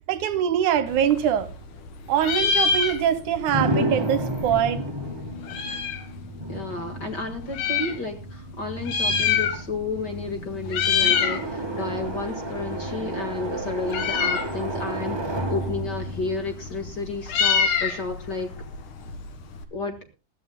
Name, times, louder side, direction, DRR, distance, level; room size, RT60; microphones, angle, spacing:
voice 1, 0.1-1.5 2.1-4.8, right 9 dB, 80° right, 2.5 m, -23 dB
Meow, 0.9-1.9 2.1-3.4 3.7-3.8 4.0-6.1 6.8-8.0 8.7-9.9 10.2-10.4 10.7-11.4 11.8-19.6, left 6 dB, 85° left, 3.2 m, -26 dB
sound 1, 3.5-17.3, right 1 dB, 20° right, 0.6 m, -32 dB
voice 2, 6.5-18.5 19.7-20.0, left 3 dB, 40° left, 1.8 m, -32 dB
21.0 x 14.0 x 2.2 m
omnidirectional pair, 3.5 m